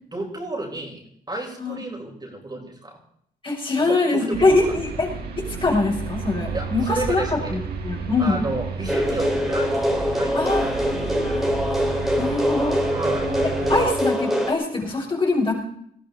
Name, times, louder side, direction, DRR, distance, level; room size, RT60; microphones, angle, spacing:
voice 1, 0.1-3.0 3.8-4.6 6.5-7.6 8.2-10.4 12.9-13.3, right 2 dB, 25° right, -1 dB, 5.0 m, -31 dB
voice 2, 3.4-5.1 5.4-8.4 10.3-11.5 12.2-12.8 13.7-15.5, left 3 dB, 30° left, -3 dB, 6.8 m, -23 dB
sound 1, 4.3-13.9, right 5 dB, 80° right, 2.8 m, -32 dB
sound 2, 8.9-14.5, equal, ahead, 3.7 m, -23 dB
19.5 x 13.5 x 4.0 m, 0.67 s
cardioid pair, 75°, 16 cm